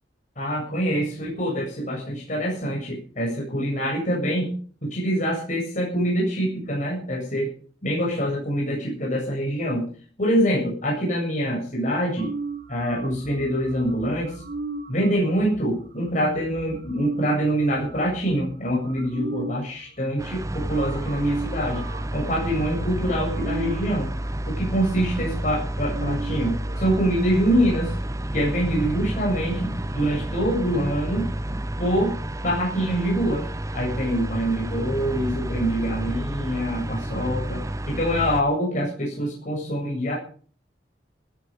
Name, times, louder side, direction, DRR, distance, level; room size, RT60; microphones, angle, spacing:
voice 1, 0.4-4.5 4.8-7.5 7.8-9.9 10.2-12.3 12.7-14.4 14.9-21.8 22.1-24.1 24.5-27.9 28.3-31.3 31.8-32.2 32.4-33.5 33.7-40.2, equal, 45° left, -2 dB, 7.6 m, -25 dB
sound 1, 12.2-19.6 20.2-20.3 20.5-27.9, right 3 dB, 60° right, 1.7 m, -37 dB
sound 2, 20.2-38.4, right 1 dB, 20° right, 0.8 m, -30 dB
19.5 x 12.5 x 5.2 m, 0.43 s
head